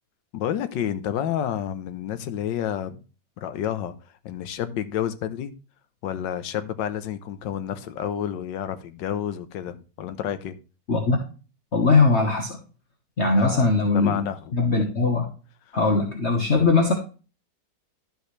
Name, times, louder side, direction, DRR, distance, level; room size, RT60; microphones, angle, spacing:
voice 1, 0.3-3.0 3.4-3.9 4.2-5.5 6.0-10.6 13.4-14.5, left 10 dB, 85° left, 1.5 m, -30 dB
voice 2, 11.7-12.6 13.2-14.2 14.5-15.3 15.7-16.9, left 3 dB, 40° left, 1.4 m, -20 dB
12.5 x 5.4 x 3.2 m
omnidirectional pair, 1.9 m